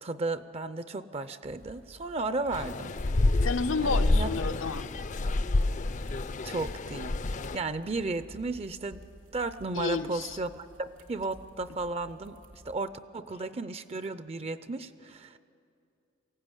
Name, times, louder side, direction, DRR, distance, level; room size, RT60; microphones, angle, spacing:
voice 1, 0.0-2.9 3.3-3.5 3.8-4.3 6.4-7.1 7.5-9.0 9.3-15.4, right 3 dB, 30° right, 13 dB, 0.5 m, -34 dB
sound 1, 1.4-12.7, equal, 80° right, 3.4 m, -53 dB
sound 2, 2.5-7.6, left 2 dB, 40° left, 0.5 m, -28 dB
voice 2, 3.4-4.9 9.7-10.4, left 4 dB, 85° left, 10 dB, 0.9 m, -31 dB
22.0 x 15.5 x 9.8 m, 2.6 s
head